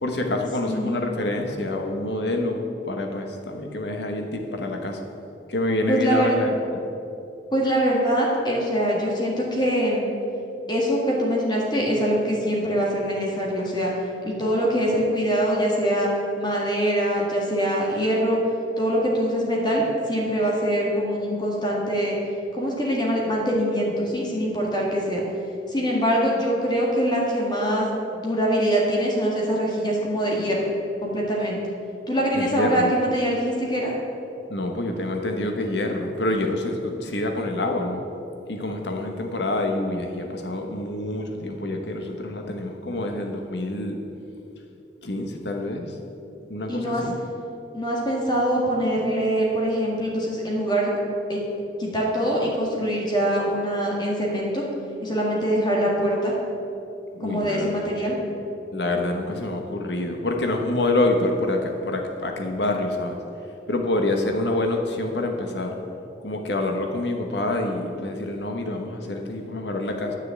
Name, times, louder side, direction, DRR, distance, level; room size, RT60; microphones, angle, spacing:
voice 1, 0.0-5.0 5.5-6.5 32.3-32.9 34.5-38.0 38.5-44.0 45.0-45.9 46.5-47.1 57.1-57.9 58.7-63.2 63.7-65.8 66.2-70.2, left 2 dB, 70° left, 3 dB, 1.1 m, -27 dB
voice 2, 5.9-6.4 7.5-10.0 10.7-13.9 14.2-16.1 16.4-18.4 18.8-22.1 22.5-25.2 25.7-27.9 28.1-30.7 31.0-31.6 32.1-33.9 46.7-47.1 47.7-50.9 51.3-51.4 51.8-54.6 55.0-56.3 57.2-58.2, equal, 25° left, -3 dB, 1.8 m, -23 dB
10.5 x 6.6 x 8.6 m, 2.8 s
head